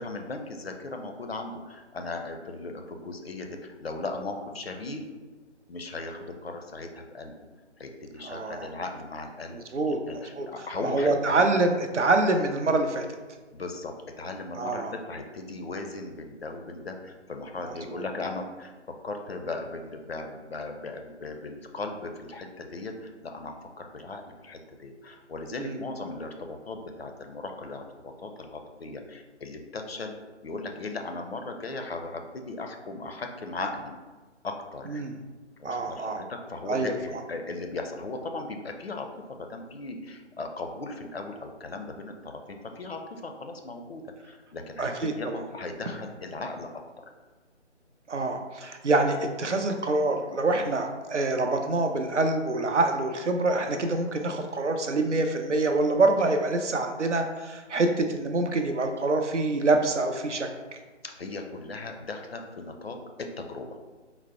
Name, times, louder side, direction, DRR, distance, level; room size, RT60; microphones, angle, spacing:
voice 1, 0.0-5.0 5.7-7.3 7.8-11.5 13.5-30.1 30.4-33.9 34.4-35.0 35.6-46.7 47.0-47.1 61.0-63.7, left 3 dB, 55° left, 4 dB, 0.5 m, -37 dB
voice 2, 8.3-8.7 9.5-10.0 10.4-10.5 10.8-13.0 14.6-14.9 17.7-18.0 25.6-25.8 34.9-35.1 35.6-36.2 36.7-37.2 44.8-45.4 48.1-60.5, right 2 dB, 75° right, 5 dB, 0.6 m, -26 dB
4.0 x 2.1 x 4.2 m, 1.3 s
figure-of-eight pair, 150°, 36 cm